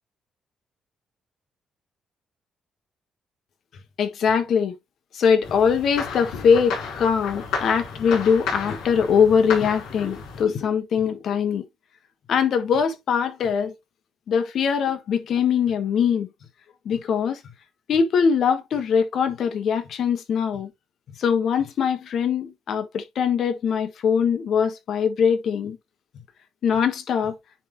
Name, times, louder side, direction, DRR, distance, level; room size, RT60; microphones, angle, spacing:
voice 1, 4.0-4.7 5.1-11.6 12.3-13.7 14.3-16.3 16.8-17.4 17.9-20.7 21.2-25.8 26.6-27.3, left 6 dB, 65° left, 1.5 m, -22 dB
sound 1, 5.4-10.4, left 5 dB, 90° left, 3.7 m, -32 dB
9.8 x 3.7 x 3.0 m
cardioid pair, 90°, 0 cm